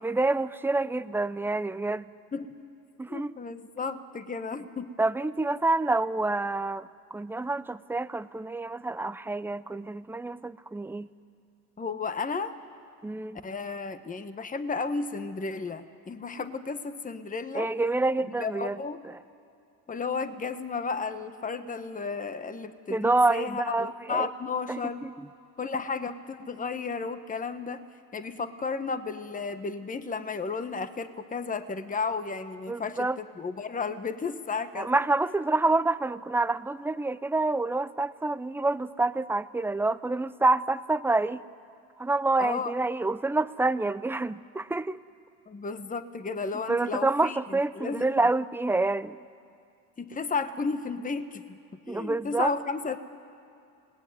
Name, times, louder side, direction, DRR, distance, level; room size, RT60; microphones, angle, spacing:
voice 1, 0.0-2.1 3.0-3.3 5.0-11.1 13.0-13.4 17.5-18.8 22.9-24.3 24.7-25.3 32.7-33.2 34.8-41.4 42.0-45.0 46.7-49.2 51.9-52.5, right 2 dB, 5° right, 15 dB, 0.5 m, -27 dB
voice 2, 3.1-5.0 11.8-12.5 13.4-17.7 18.4-19.0 19.9-25.1 25.6-27.8 28.1-35.0 42.4-42.7 45.5-48.1 50.0-51.6 51.9-53.0, left 4 dB, 20° left, 10 dB, 1.3 m, -33 dB
28.0 x 19.0 x 9.5 m, 2.5 s
supercardioid pair, 95°, 42 cm